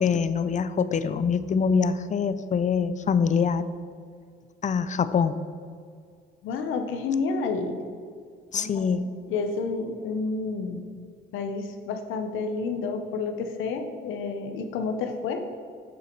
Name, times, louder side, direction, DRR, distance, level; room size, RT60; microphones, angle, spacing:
voice 1, 0.0-3.7 4.6-5.4 8.5-9.1, left 6 dB, 40° left, 14 dB, 0.5 m, -24 dB
voice 2, 6.4-7.8 8.5-8.8 9.3-10.8 11.3-15.4, left 4 dB, 90° left, 6 dB, 0.8 m, -30 dB
7.6 x 6.8 x 4.5 m, 2.2 s
cardioid pair, 90°, 20 cm